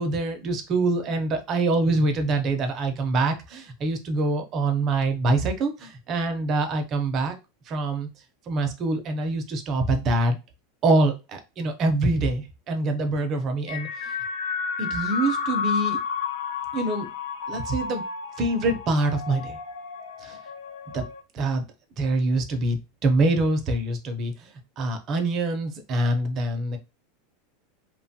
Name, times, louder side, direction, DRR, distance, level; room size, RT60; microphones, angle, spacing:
voice 1, 0.0-7.4 7.7-8.1 8.5-10.4 10.8-14.1 14.8-16.0 16.7-17.1 17.5-18.0 18.4-19.6 20.2-20.4 20.9-21.0 21.3-21.6 22.0-24.5 24.8-26.8, right 2 dB, 25° right, 6 dB, 0.5 m, -25 dB
sound 1, 13.7-21.2, left 6 dB, 80° left, 0.5 m, -31 dB
2.9 x 2.2 x 2.7 m, 0.27 s
supercardioid pair, 175°, 0 cm